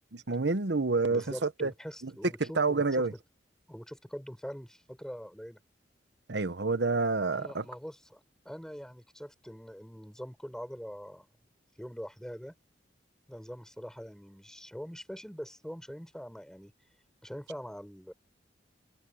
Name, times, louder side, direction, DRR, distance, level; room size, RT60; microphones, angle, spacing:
voice 1, 0.3-1.7 2.0-2.1 2.4-3.1 6.3-7.6, right 3 dB, 70° right, 1.0 m, -28 dB
voice 2, 1.1-3.1 3.7-5.6 7.3-11.3 11.8-12.5 13.3-16.7 17.2-18.1, equal, 5° left, 6.3 m, -43 dB
head